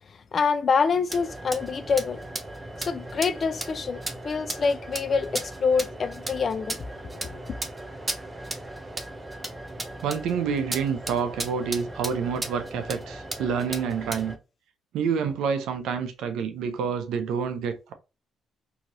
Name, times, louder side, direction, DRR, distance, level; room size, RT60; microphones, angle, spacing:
voice 1, 0.3-2.2 2.8-4.0 4.2-6.8 7.2-7.4, left 5 dB, 45° left, 0.4 m, -26 dB
sound 1, 1.1-14.4, right 2 dB, 20° right, 0.6 m, -36 dB
voice 2, 10.0-14.4 14.9-17.9, right 6 dB, 85° right, 0.5 m, -28 dB
2.9 x 2.7 x 2.6 m
cardioid pair, 90°, 0 cm